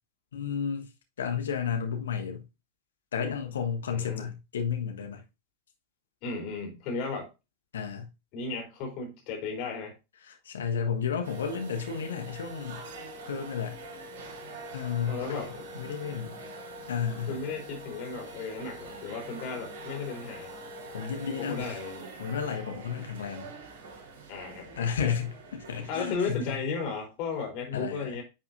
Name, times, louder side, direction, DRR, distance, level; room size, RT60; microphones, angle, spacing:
voice 1, 0.3-0.9 1.2-2.4 3.1-5.2 7.7-8.1 10.3-12.8 13.2-13.8 14.7-16.4 16.9-17.4 20.9-21.7 22.2-23.5 24.8-26.5 27.7-28.2, left 7 dB, 65° left, 1.3 m, -32 dB
voice 2, 3.9-4.3 6.2-7.3 8.3-9.9 15.1-15.5 17.3-20.5 21.4-22.1 24.3-25.2 25.9-28.2, left 4 dB, 40° left, 3.5 m, -35 dB
sound 1, 11.2-26.2, right 1 dB, 55° right, 4.3 m, -44 dB
10.5 x 5.7 x 2.6 m
figure-of-eight pair, 90°, 0 cm